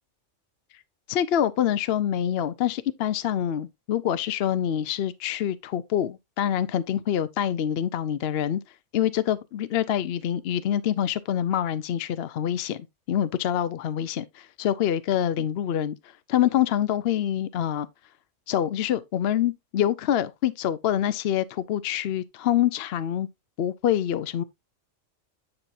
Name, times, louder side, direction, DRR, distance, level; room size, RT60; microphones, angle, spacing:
voice 1, 1.1-8.6 8.9-12.8 13.1-16.0 16.3-17.9 18.5-23.3 23.6-24.4, left 10 dB, 60° left, 0.8 m, -26 dB
9.7 x 5.8 x 2.6 m
omnidirectional pair, 1.3 m